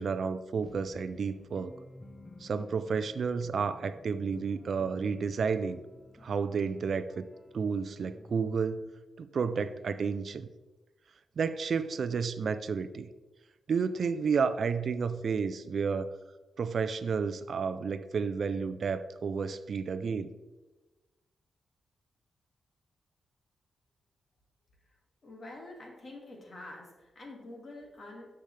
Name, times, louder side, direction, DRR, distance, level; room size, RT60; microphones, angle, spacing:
voice 1, 0.0-1.7 2.4-5.8 6.2-7.3 7.5-8.9 9.2-10.5 11.4-13.1 13.7-16.1 16.6-20.3, right 5 dB, 50° right, 12 dB, 0.4 m, -31 dB
sound 1, 0.6-8.8, left 1 dB, 10° left, 0.5 m, -54 dB
voice 2, 25.2-28.3, left 2 dB, 40° left, 0 dB, 1.9 m, -47 dB
9.9 x 6.8 x 3.2 m, 1.2 s
wide cardioid pair, 155°, 0 cm